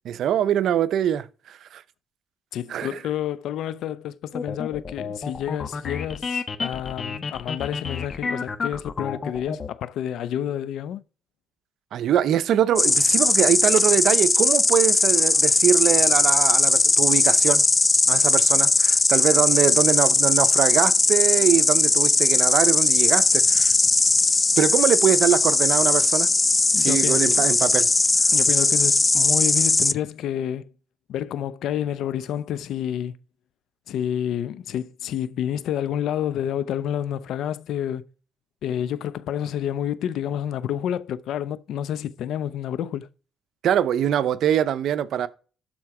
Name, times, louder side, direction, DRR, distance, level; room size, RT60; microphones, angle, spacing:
voice 1, 0.0-1.8 2.7-3.0 11.9-17.6 18.1-23.7 24.6-26.3 26.8-27.9 43.6-45.3, right 10 dB, 75° right, 0.7 m, -23 dB
voice 2, 2.5-11.0 26.7-27.5 28.3-30.7 31.1-33.2 33.9-38.0 38.6-43.1, left 10 dB, 80° left, 0.6 m, -29 dB
sound 1, 4.3-9.7, left 5 dB, 40° left, 1.2 m, -30 dB
Insect, 12.8-29.9, left 3 dB, 20° left, 0.4 m, -19 dB
12.5 x 4.4 x 4.8 m
cardioid pair, 90°, 0 cm